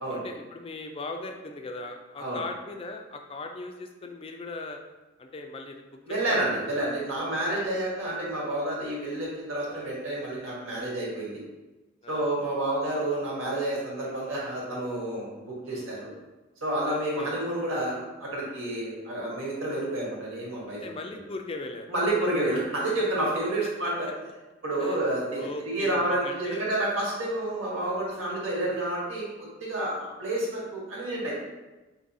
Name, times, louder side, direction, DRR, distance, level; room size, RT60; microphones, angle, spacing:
voice 1, 0.1-4.8 5.2-6.7 7.6-7.8 12.0-12.3 15.7-15.9 16.8-17.3 20.7-21.9 24.8-25.0 25.3-26.6 28.2-28.7, left 2 dB, 25° left, 4 dB, 0.3 m, -39 dB
voice 2, 6.1-11.4 12.1-16.1 16.6-20.8 21.9-24.1 24.6-31.3, right 1 dB, 85° right, -4 dB, 1.3 m, -29 dB
5.3 x 2.7 x 2.7 m, 1.1 s
head